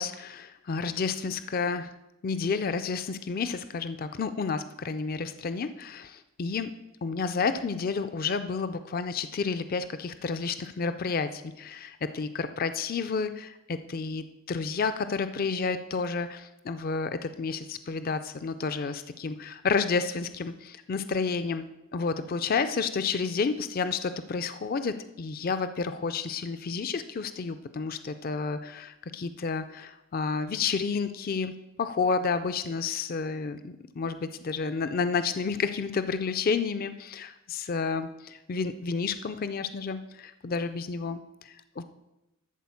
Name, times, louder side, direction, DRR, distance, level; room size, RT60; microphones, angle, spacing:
voice 1, 0.0-1.9 2.2-6.7 7.0-21.7 21.9-31.5 31.8-41.8, left 5 dB, 40° left, 11 dB, 0.4 m, -30 dB
12.0 x 4.3 x 7.1 m, 0.93 s
head